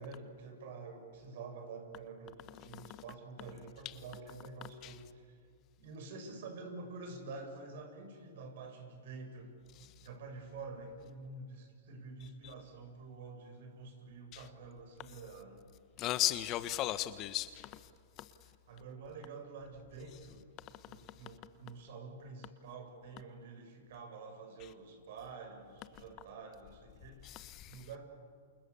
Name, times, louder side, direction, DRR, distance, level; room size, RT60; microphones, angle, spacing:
voice 1, 0.0-5.4 5.8-9.5 10.0-15.7 18.7-20.5 20.9-28.0, right 4 dB, 60° right, 7.8 m, -48 dB
voice 2, 16.0-17.8 18.2-18.3 27.2-27.8, left 14 dB, 35° left, 1.3 m, -36 dB
29.5 x 27.5 x 7.3 m
hypercardioid pair, 125°, 0 cm